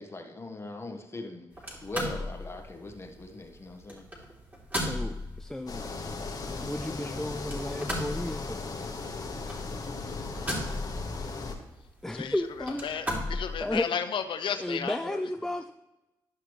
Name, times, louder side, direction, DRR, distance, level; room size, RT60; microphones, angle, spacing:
voice 1, 0.0-1.5 1.8-4.1 7.0-7.1 9.8-10.4, left 2 dB, 30° left, 4 dB, 1.5 m, -41 dB
sound 1, 1.5-13.9, left 1 dB, 20° right, 3.0 m, -38 dB
voice 2, 4.8-6.2 6.6-8.6 12.0-12.9 13.6-13.9 14.6-15.7, left 1 dB, 5° left, 8 dB, 0.4 m, -33 dB
sound 2, 5.7-11.5, left 3 dB, 45° left, 1.4 m, -37 dB
voice 3, 12.8-15.2, left 7 dB, 65° left, 9 dB, 0.8 m, -33 dB
11.5 x 5.7 x 3.2 m, 0.97 s
supercardioid pair, 55°, 9 cm